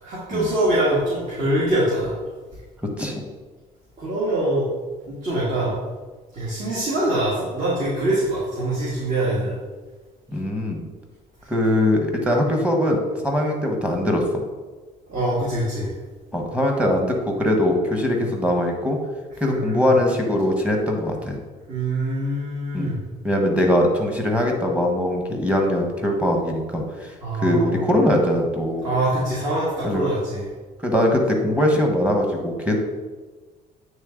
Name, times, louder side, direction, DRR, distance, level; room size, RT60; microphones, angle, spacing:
voice 1, 0.0-2.1 4.0-4.7 5.1-5.7 6.3-9.6 15.1-15.9 19.5-19.9 21.7-23.0 27.2-27.9 28.8-30.5, right 1 dB, 45° right, -7 dB, 1.7 m, -24 dB
voice 2, 10.3-10.9 11.5-14.2 16.3-19.0 19.4-21.3 22.7-22.9 23.2-28.9 29.8-30.0 30.8-32.8, left 1 dB, 10° right, 1 dB, 1.2 m, -21 dB
8.3 x 3.4 x 3.8 m, 1.3 s
cardioid pair, 110°, 17 cm